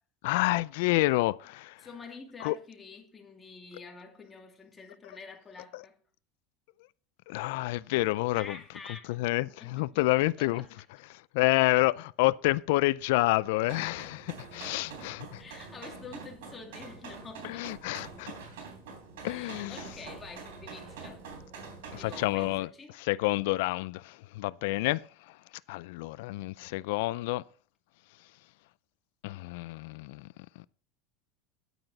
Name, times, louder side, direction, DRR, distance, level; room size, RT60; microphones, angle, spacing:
voice 1, 0.2-1.9 2.4-2.6 5.7-5.8 7.3-8.6 9.1-10.6 11.1-15.4 17.4-18.3 19.2-19.8 21.9-25.4 25.7-27.4 29.2-30.3, left 19 dB, 70° left, 0.3 m, -29 dB
voice 2, 1.8-6.0 8.3-9.2 9.6-10.1 10.4-10.7 15.4-17.7 19.2-21.2 21.9-23.0, left 4 dB, 15° left, 2.3 m, -47 dB
sound 1, 13.6-22.6, right 4 dB, 90° right, 3.5 m, -45 dB
9.7 x 9.0 x 4.0 m
supercardioid pair, 140°, 0 cm